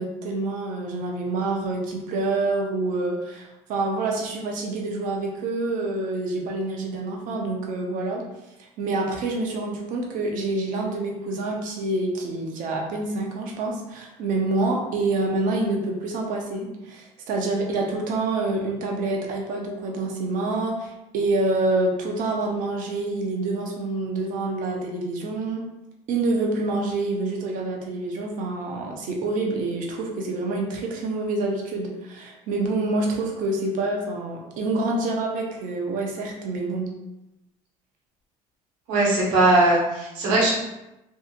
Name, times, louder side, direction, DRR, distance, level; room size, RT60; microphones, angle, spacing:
voice 1, 0.0-8.2 8.8-25.6 26.1-36.9, right 2 dB, 65° right, 0 dB, 0.7 m, -27 dB
voice 2, 38.9-40.5, right 2 dB, 85° right, -5 dB, 1.0 m, -19 dB
2.7 x 2.5 x 2.4 m, 0.94 s
supercardioid pair, 100°, 15 cm